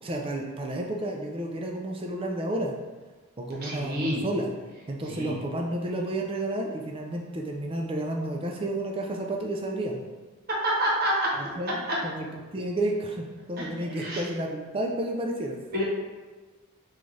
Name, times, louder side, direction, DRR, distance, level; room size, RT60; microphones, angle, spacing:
voice 1, 0.0-2.8 3.4-4.6 4.9-10.0 11.3-12.3 12.5-15.6, right 1 dB, 25° right, 1 dB, 0.3 m, -31 dB
voice 2, 3.6-4.2 5.1-5.3 10.6-11.3 11.9-12.0 13.6-14.2 15.7-15.8, right 1 dB, 45° right, -5 dB, 0.9 m, -28 dB
3.9 x 2.4 x 3.1 m, 1.3 s
head